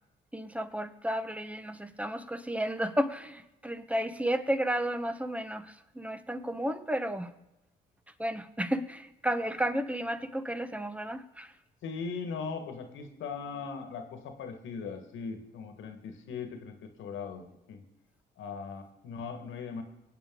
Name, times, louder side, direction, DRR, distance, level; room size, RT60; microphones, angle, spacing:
voice 1, 0.3-7.3 8.2-11.5, equal, 5° right, 1.2 m, -32 dB
voice 2, 11.8-17.8 18.4-19.8, left 5 dB, 75° left, 1.7 m, -39 dB
24.5 x 8.2 x 3.9 m
hypercardioid pair, 50°, 20 cm